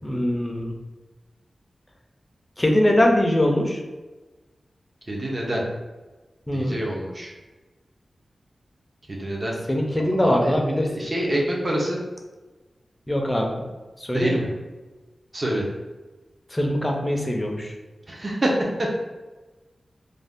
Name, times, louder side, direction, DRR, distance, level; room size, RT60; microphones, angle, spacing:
voice 1, 0.0-0.7 2.6-3.8 6.5-6.8 9.7-10.9 13.1-13.6 14.1-14.5 16.5-17.7, left 1 dB, 15° left, 1 dB, 0.4 m, -22 dB
voice 2, 5.1-5.6 6.5-7.3 9.1-9.6 10.1-12.0 14.1-14.5 15.3-15.7 18.1-18.9, right 1 dB, 30° right, -2 dB, 0.6 m, -26 dB
2.5 x 2.3 x 3.4 m, 1.2 s
wide cardioid pair, 125°, 0 cm